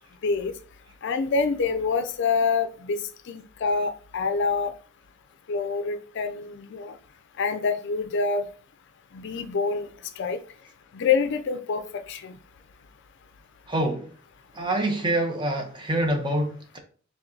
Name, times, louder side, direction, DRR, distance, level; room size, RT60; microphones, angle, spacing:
voice 1, 0.2-0.5 1.0-3.0 3.3-4.7 5.5-6.9 7.4-8.5 9.1-9.9 10.2-10.4 10.9-12.3, left 4 dB, 55° left, 0.4 m, -26 dB
voice 2, 13.7-14.1 14.5-16.8, right 1 dB, 20° right, 0.8 m, -26 dB
4.8 x 3.4 x 2.7 m
head